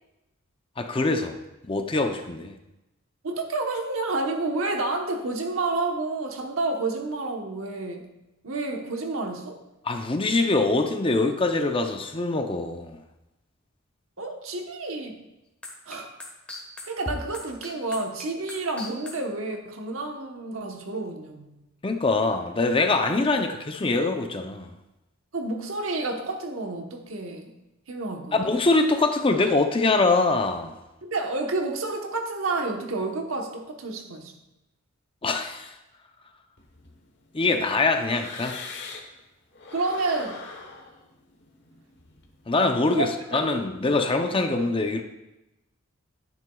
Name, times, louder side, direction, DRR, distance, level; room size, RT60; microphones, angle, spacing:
voice 1, 0.8-1.4 1.7-2.5 9.8-13.0 21.8-24.7 28.3-30.7 35.2-35.7 37.3-38.6 42.5-45.0, left 3 dB, 25° left, 6 dB, 0.6 m, -23 dB
voice 2, 3.2-8.1 8.4-9.6 14.2-15.2 15.9-16.1 16.9-21.6 25.3-27.5 27.9-28.5 31.0-34.3 39.7-40.4 42.9-43.5, right 3 dB, 75° right, 3 dB, 1.1 m, -30 dB
sound 1, 15.6-19.1, left 1 dB, 5° left, 1.3 m, -36 dB
sound 2, 36.6-39.2 39.5-42.6, left 4 dB, 55° left, 1.2 m, -43 dB
10.5 x 9.3 x 2.3 m, 0.94 s
head